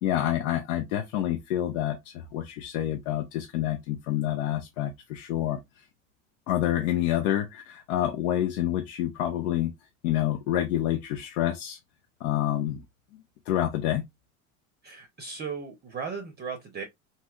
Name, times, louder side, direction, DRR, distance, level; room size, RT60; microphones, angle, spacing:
voice 1, 0.0-5.8 6.5-9.7 10.0-11.8 12.2-12.8 13.5-14.0, left 12 dB, 85° left, 0.6 m, -28 dB
voice 2, 14.8-16.8, right 5 dB, 25° right, 0.6 m, -36 dB
3.1 x 2.8 x 2.3 m
supercardioid pair, 115°, 41 cm